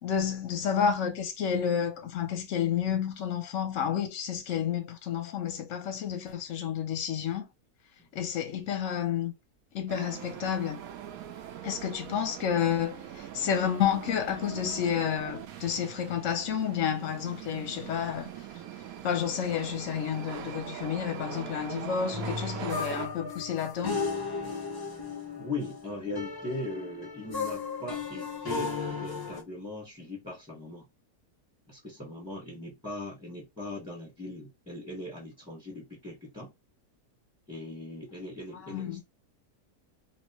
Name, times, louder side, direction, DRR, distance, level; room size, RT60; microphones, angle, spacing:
voice 1, 0.0-7.5 8.1-9.3 9.7-10.8 11.6-18.3 19.0-24.0 38.5-39.0, left 8 dB, 65° left, 0.9 m, -30 dB
sound 1, 9.9-23.1, right 10 dB, 70° right, 1.0 m, -42 dB
sound 2, 22.1-29.4, left 4 dB, 35° left, 0.3 m, -35 dB
voice 2, 25.3-30.9 31.7-36.5 37.5-39.0, left 2 dB, 5° right, 1.2 m, -39 dB
3.3 x 2.7 x 2.9 m
omnidirectional pair, 1.7 m